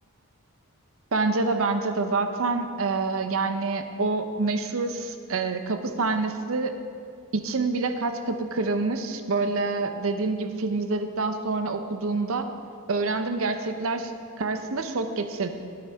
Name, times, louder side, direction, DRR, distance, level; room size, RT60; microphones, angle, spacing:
voice 1, 1.1-6.7 7.3-12.5 12.9-14.1 14.4-15.5, right 3 dB, 65° right, 8 dB, 0.7 m, -27 dB
12.5 x 8.8 x 3.5 m, 2.3 s
head